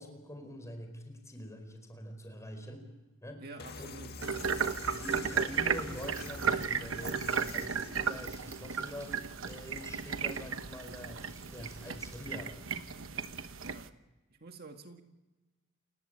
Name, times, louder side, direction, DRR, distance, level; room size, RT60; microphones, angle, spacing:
voice 1, 0.0-2.9 3.2-3.4 3.8-3.9 4.9-12.7, equal, 15° left, 5 dB, 4.6 m, -45 dB
voice 2, 3.4-4.1 13.6-14.0 14.3-15.0, right 3 dB, 50° right, 5 dB, 1.8 m, -49 dB
sound 1, 3.6-8.4, left 4 dB, 50° left, 1.8 m, -46 dB
Crumpling crinkling, 4.2-12.4, right 1 dB, 15° right, 4.3 m, -57 dB
sound 2, 4.2-13.9, right 6 dB, 75° right, 1.1 m, -35 dB
29.0 x 15.5 x 8.9 m, 1.1 s
head